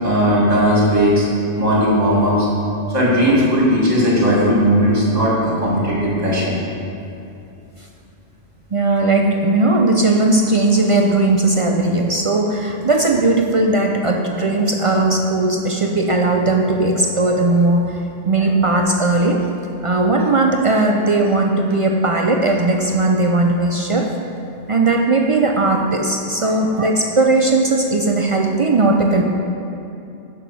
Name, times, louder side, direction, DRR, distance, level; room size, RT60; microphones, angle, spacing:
voice 1, 0.0-1.3 1.5-2.5 2.9-6.6 14.5-14.7 18.4-18.5 26.4-26.5, equal, 35° right, -5 dB, 2.2 m, -17 dB
voice 2, 8.7-19.5 19.8-24.1 24.7-29.2, right 2 dB, 50° right, 1 dB, 0.4 m, -17 dB
6.8 x 6.2 x 6.2 m, 2.7 s
omnidirectional pair, 1.2 m